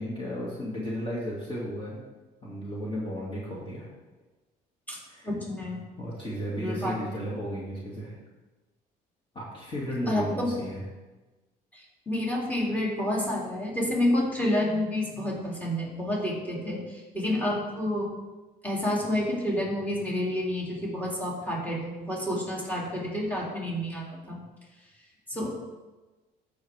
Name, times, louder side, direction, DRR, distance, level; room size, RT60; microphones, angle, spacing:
voice 1, 0.0-2.0 2.4-3.9 5.1-5.3 6.0-8.1 9.3-10.9, equal, 30° left, -5 dB, 2.4 m, -34 dB
voice 2, 5.2-5.8 6.6-7.0 10.1-10.5 12.1-18.1 18.6-24.4 25.3-25.5, left 1 dB, 10° left, -4 dB, 2.8 m, -29 dB
14.0 x 6.4 x 3.5 m, 1.2 s
cardioid pair, 110°, 17 cm